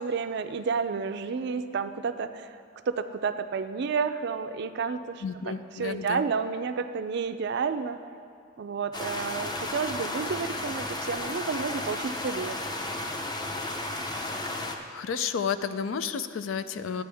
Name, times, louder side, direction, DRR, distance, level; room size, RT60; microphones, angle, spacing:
voice 1, 0.0-2.6 2.9-8.0 8.6-12.6, right 5 dB, 60° right, 10 dB, 0.4 m, -31 dB
voice 2, 5.2-6.2 14.1-14.4 14.9-17.0, left 6 dB, 85° left, 12 dB, 0.4 m, -32 dB
sound 1, 8.9-14.8, left 2 dB, 20° left, 0.6 m, -33 dB
11.5 x 9.2 x 3.4 m, 2.3 s
head